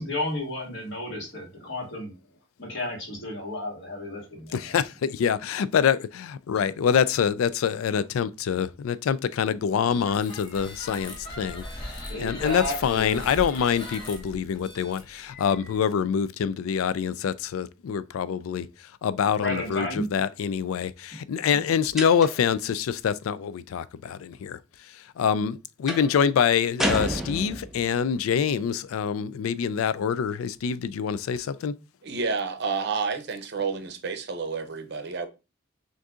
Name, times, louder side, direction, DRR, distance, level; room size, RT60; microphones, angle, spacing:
voice 1, 0.0-2.1 2.6-4.8 6.5-6.6 12.1-13.2 19.4-20.1, left 1 dB, 55° left, 1.9 m, -32 dB
voice 2, 4.5-31.7, left 7 dB, 90° left, 0.3 m, -26 dB
sound 1, 9.9-15.8, left 1 dB, 20° left, 0.9 m, -39 dB
sound 2, 22.0-22.6 25.9-26.2 26.8-27.9, equal, ahead, 0.5 m, -29 dB
voice 3, 32.0-35.3, right 5 dB, 55° right, 0.6 m, -30 dB
6.2 x 2.6 x 2.4 m
head